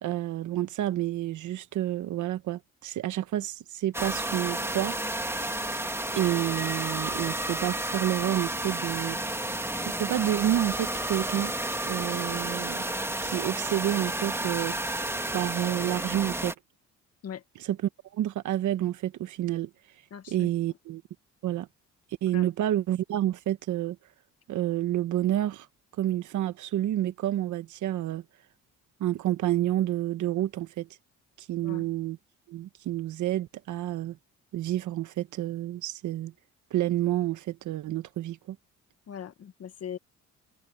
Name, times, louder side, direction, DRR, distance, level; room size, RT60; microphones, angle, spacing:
voice 1, 0.0-4.9 6.1-9.4 9.8-11.5 11.9-12.8 13.2-16.5 17.6-17.8 18.1-19.7 20.3-21.0 21.4-21.7 22.2-24.0 24.5-25.7 26.0-28.2 29.0-30.9 31.4-32.2 32.5-34.2 34.5-36.3 36.7-38.6, right 13 dB, 75° right, 1.3 m, -29 dB
sound 1, 3.9-16.5, right 1 dB, 10° right, 2.2 m, -31 dB
voice 2, 20.1-20.5 22.3-22.5 31.6-31.9 39.1-40.0, left 9 dB, 55° left, 1.8 m, -40 dB
cardioid pair, 90°, 30 cm